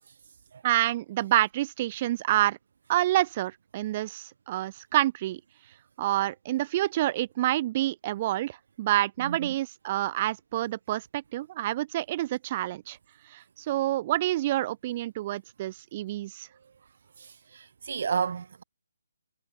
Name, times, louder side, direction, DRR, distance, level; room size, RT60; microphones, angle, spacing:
voice 1, 0.6-2.6 2.9-5.4 6.0-13.0 13.3-16.5, right 15 dB, 30° right, 2.6 m, -28 dB
voice 2, 9.2-9.5 17.2-18.6, right 6 dB, 55° right, 1.7 m, -32 dB
hypercardioid pair, 155°, 0 cm